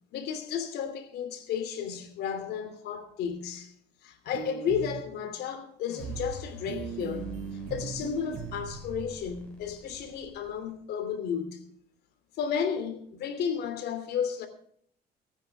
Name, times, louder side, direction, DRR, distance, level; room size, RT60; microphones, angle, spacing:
voice 1, 0.1-3.7 4.0-7.4 7.7-11.6 12.4-14.5, left 7 dB, 75° left, 2.9 m, -33 dB
sound 1, 4.3-5.0 6.0-6.3 6.7-9.0, right 8 dB, 75° right, 2.3 m, -39 dB
sound 2, 5.9-10.9, right 2 dB, 5° left, 7.2 m, -47 dB
24.5 x 9.8 x 3.5 m
cardioid pair, 110°, 17 cm